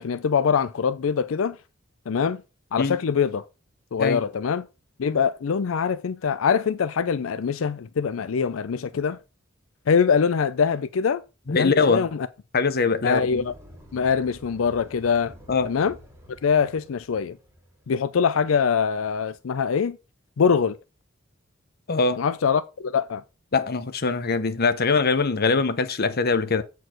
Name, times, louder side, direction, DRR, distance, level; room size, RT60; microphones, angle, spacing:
voice 1, 0.0-1.6 2.1-2.4 2.7-3.5 3.9-4.7 5.0-9.2 9.9-11.2 11.5-12.3 13.0-13.5 13.9-15.3 15.6-16.0 16.4-17.4 17.9-20.0 20.4-20.8 22.2-23.2, left 6 dB, 85° left, 0.5 m, -23 dB
voice 2, 11.5-12.1 12.5-13.4 15.5-15.7 21.9-22.2 23.5-26.6, left 4 dB, 50° left, 0.8 m, -22 dB
sound 1, 12.8-18.0, right 1 dB, 15° right, 2.2 m, -49 dB
8.0 x 4.6 x 5.9 m
head